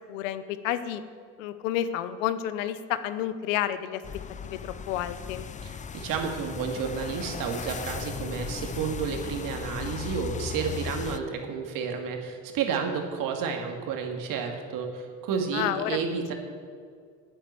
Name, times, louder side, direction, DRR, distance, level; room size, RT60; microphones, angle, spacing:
voice 1, 0.1-1.0 1.4-4.0 4.4-5.5 15.5-16.0, left 11 dB, 90° left, 13 dB, 0.9 m, -30 dB
sound 1, 4.0-11.2, left 6 dB, 20° left, 0.5 m, -37 dB
voice 2, 5.6-16.3, right 6 dB, 60° right, 4 dB, 2.2 m, -31 dB
9.9 x 9.2 x 8.4 m, 2.1 s
supercardioid pair, 100°, 37 cm